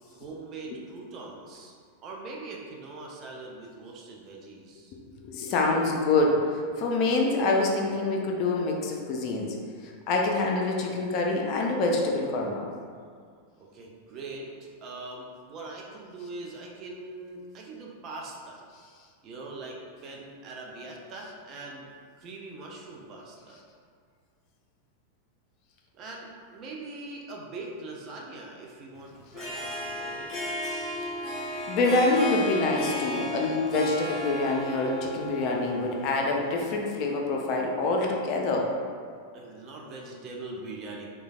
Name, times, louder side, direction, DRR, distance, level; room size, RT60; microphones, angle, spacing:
voice 1, 0.0-1.7 2.0-5.0 13.6-18.6 19.2-21.9 22.2-23.6 25.9-30.4 39.3-41.1, right 2 dB, 35° right, -2 dB, 0.4 m, -42 dB
voice 2, 5.2-9.6 9.8-12.7 31.7-38.7, left 2 dB, 40° left, 0 dB, 0.3 m, -26 dB
Harp, 29.2-36.5, left 1 dB, 20° left, 0.8 m, -34 dB
3.1 x 2.2 x 2.3 m, 2.1 s
figure-of-eight pair, 90°, 0 cm